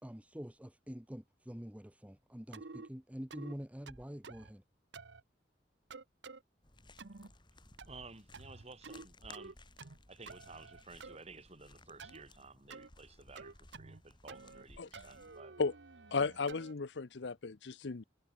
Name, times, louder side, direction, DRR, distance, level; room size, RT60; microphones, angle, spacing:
voice 1, 0.0-4.6, equal, 10° right, 1.1 m, -46 dB
sound 1, 2.5-2.9 3.3-3.6 3.9-4.5 4.9-5.2 5.9-6.4 7.0-7.3 7.8-8.1 8.3-9.1 9.3-10.0 10.3-11.2 12.0-12.2 12.7-12.9 13.4-14.0 14.3-14.6 14.9-16.7, right 4 dB, 85° right, 1.1 m, -50 dB
sound 2, 6.6-15.4, left 2 dB, 25° left, 3.0 m, -60 dB
voice 2, 7.9-9.6 10.1-15.6 16.2-16.5, right 3 dB, 35° right, 4.1 m, -54 dB
voice 3, 16.1-18.0, left 4 dB, 85° left, 0.7 m, -35 dB
head